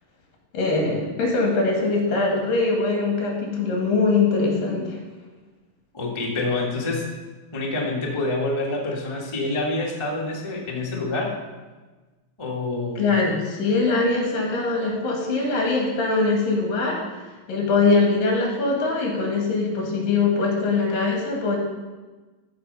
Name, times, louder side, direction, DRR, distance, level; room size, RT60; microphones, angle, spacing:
voice 1, 0.5-5.0 13.0-17.0 17.5-21.6, left 3 dB, 75° left, -1 dB, 3.7 m, -22 dB
voice 2, 5.9-7.0 7.5-11.3 12.4-13.0, left 2 dB, 35° left, -3 dB, 0.4 m, -27 dB
14.5 x 4.9 x 5.4 m, 1.2 s
omnidirectional pair, 4.0 m